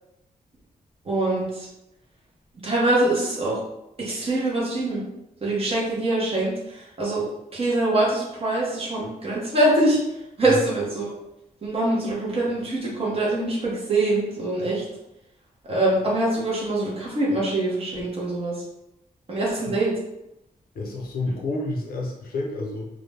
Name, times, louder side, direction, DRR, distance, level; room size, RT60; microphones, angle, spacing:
voice 1, 1.0-1.7 2.6-3.6 4.0-5.0 5.4-7.2 7.5-11.1 11.6-14.8 15.7-18.6 19.3-19.9, right 2 dB, 40° right, -5 dB, 0.8 m, -24 dB
voice 2, 20.7-22.9, left 2 dB, 85° left, -1 dB, 0.6 m, -29 dB
2.5 x 2.1 x 3.2 m, 0.87 s
wide cardioid pair, 145°, 15 cm